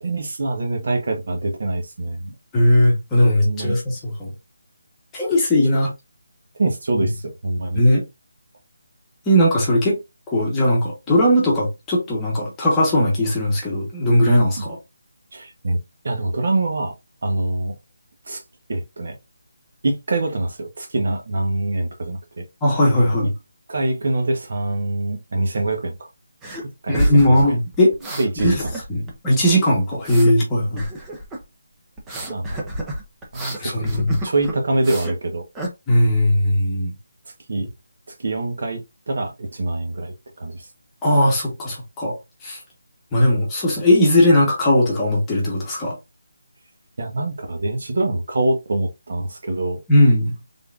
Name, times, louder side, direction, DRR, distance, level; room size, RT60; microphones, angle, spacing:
voice 1, 0.0-2.3 3.4-3.8 6.6-7.1 7.4-7.8 15.3-15.8 16.0-16.9 17.2-17.7 18.3-18.4 18.7-19.2 19.8-22.4 23.7-25.9 26.8-27.6 28.2-28.7 32.3-32.6 33.3-35.4 37.5-37.7 38.2-40.1 40.4-40.5 47.0-49.8, right 2 dB, 50° right, 1.0 m, -24 dB
voice 2, 2.5-4.3 5.1-5.9 6.9-7.1 7.7-8.0 9.3-10.0 10.3-14.8 22.6-23.3 26.9-27.9 28.4-28.5 28.9-30.9 33.6-34.2 35.9-36.9 37.6-37.7 41.0-42.1 42.4-42.6 43.1-46.0 49.9-50.3, left 1 dB, 10° left, 1.1 m, -18 dB
sound 1, 26.4-26.6 26.9-29.1 29.4-30.3 30.8-31.4 32.0-35.2 35.6-35.7, right 1 dB, 5° right, 0.5 m, -29 dB
3.7 x 3.5 x 2.4 m
hypercardioid pair, 175°, 0 cm